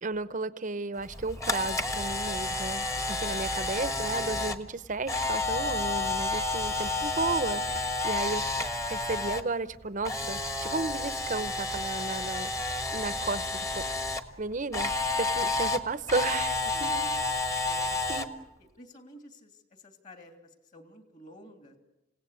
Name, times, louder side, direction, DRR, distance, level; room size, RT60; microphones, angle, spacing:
voice 1, 0.0-8.4 8.9-12.5 12.9-14.0 14.4-16.9 18.1-18.3, right 3 dB, 40° right, 14 dB, 0.8 m, -33 dB
Camera, 1.1-9.4 9.7-14.2 14.7-18.2, left 2 dB, 15° left, 1.3 m, -30 dB
voice 2, 16.7-17.2 17.6-18.3 18.6-21.8, equal, 40° left, 5 dB, 2.9 m, -51 dB
28.5 x 17.5 x 8.3 m, 0.96 s
head